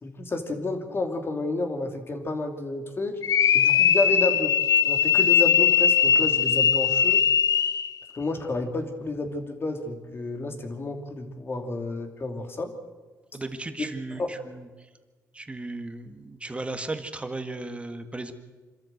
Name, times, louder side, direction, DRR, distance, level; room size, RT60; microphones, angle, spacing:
voice 1, 0.0-3.2 3.5-4.5 4.9-7.2 8.1-12.7 13.8-14.3, left 2 dB, 35° left, 5 dB, 2.8 m, -30 dB
sound 1, 3.2-8.0, left 8 dB, 60° left, 0.8 m, -20 dB
voice 2, 13.3-14.9 15.3-18.3, right 2 dB, 20° right, 8 dB, 1.8 m, -36 dB
25.5 x 13.5 x 8.0 m, 1.3 s
cardioid pair, 90°, 7 cm